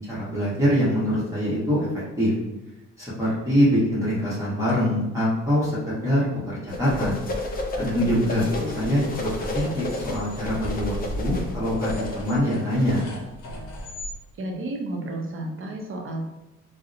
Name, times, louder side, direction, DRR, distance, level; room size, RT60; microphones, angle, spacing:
voice 1, 0.1-1.9 2.2-2.3 3.0-7.2 7.8-8.5 8.7-13.1, equal, 10° right, -10 dB, 0.9 m, -24 dB
sound 1, 6.7-13.0, left 2 dB, 30° left, 0.4 m, -32 dB
voice 2, 8.6-8.9 14.4-16.2, right 1 dB, 45° right, 2 dB, 0.6 m, -32 dB
sound 2, 9.3-14.2, equal, 75° left, 0.6 m, -36 dB
2.6 x 2.0 x 2.5 m, 0.98 s
cardioid pair, 90°, 30 cm